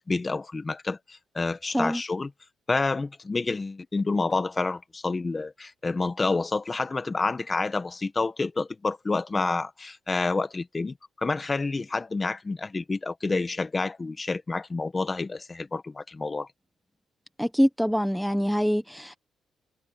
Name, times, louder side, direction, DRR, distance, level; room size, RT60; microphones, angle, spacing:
voice 1, 0.0-2.3 2.7-16.5, left 3 dB, 25° left, 1.7 m, -29 dB
voice 2, 17.4-19.2, equal, ahead, 1.2 m, -24 dB
cardioid pair, 90°, 0 cm